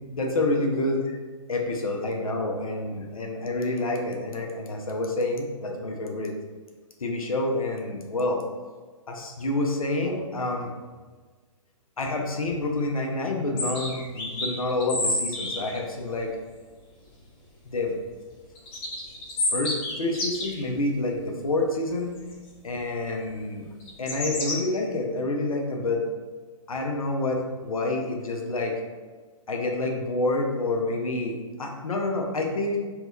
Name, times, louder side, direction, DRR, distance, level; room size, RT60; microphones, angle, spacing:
voice 1, 0.1-1.2 1.5-6.3 7.0-8.4 9.1-10.7 12.0-16.4 17.6-18.0 19.5-22.1 22.6-23.7 24.0-26.1 26.7-28.8 29.5-32.8, left 2 dB, 90° left, 1 dB, 0.5 m, -28 dB
sound 1, 13.6-15.8 18.6-20.6 22.2-22.3 23.8-24.6, left 2 dB, 25° left, 0.5 m, -29 dB
2.6 x 2.2 x 2.2 m, 1.4 s
hypercardioid pair, 130°, 17 cm